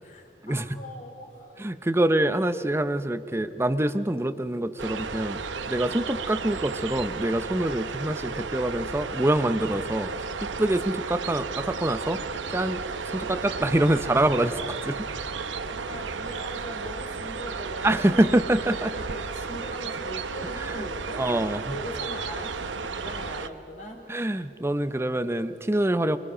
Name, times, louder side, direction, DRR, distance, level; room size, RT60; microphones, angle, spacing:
voice 1, 0.0-1.6 15.7-18.5 18.9-21.2 21.7-24.0, equal, 40° left, 1 dB, 3.9 m, -40 dB
voice 2, 1.6-5.4 5.7-10.1 10.4-12.2 12.5-15.0 17.8-18.9 20.6-20.9 21.2-21.8 24.1-26.2, right 1 dB, 15° right, 11 dB, 0.6 m, -25 dB
sound 1, 4.8-23.5, right 5 dB, 75° right, 0.8 m, -33 dB
29.5 x 22.5 x 5.0 m, 2.6 s
head